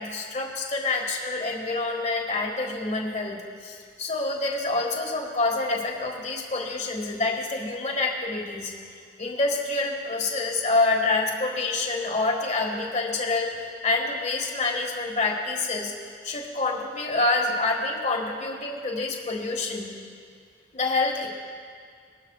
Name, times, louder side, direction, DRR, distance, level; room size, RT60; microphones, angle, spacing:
voice 1, 0.0-8.7 9.2-15.9 16.2-19.9 20.7-21.3, left 3 dB, 40° left, 1 dB, 1.8 m, -27 dB
21.5 x 12.5 x 2.4 m, 2.1 s
head